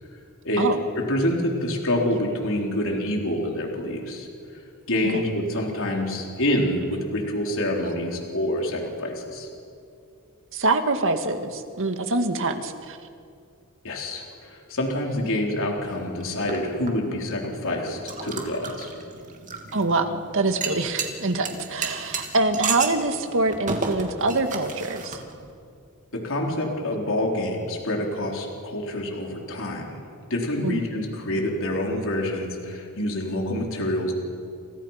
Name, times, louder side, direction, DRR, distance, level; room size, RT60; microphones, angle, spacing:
voice 1, 0.4-4.3 4.5-4.6 4.9-9.5 13.8-18.9 26.1-30.0 30.3-34.1, left 1 dB, 60° left, 0 dB, 4.3 m, -27 dB
voice 2, 10.5-13.0 19.7-25.2 30.6-30.8, right 2 dB, 60° right, 7 dB, 2.1 m, -25 dB
sound 1, 15.8-25.5, right 4 dB, 35° right, 2.7 m, -34 dB
30.0 x 29.0 x 5.9 m, 2.4 s
head